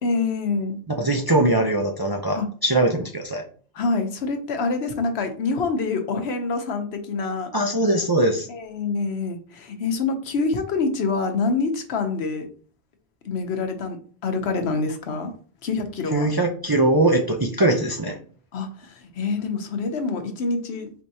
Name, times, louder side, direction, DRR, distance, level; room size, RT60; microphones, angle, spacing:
voice 1, 0.0-0.8 2.3-2.5 3.7-7.5 8.5-12.5 13.2-14.0 14.2-15.3 15.6-16.3 18.5-20.9, left 4 dB, 75° left, 7 dB, 1.0 m, -26 dB
voice 2, 1.0-3.4 7.5-8.5 16.1-18.2, right 1 dB, 30° right, 0 dB, 0.4 m, -21 dB
4.6 x 3.4 x 2.7 m, 0.43 s
omnidirectional pair, 1.1 m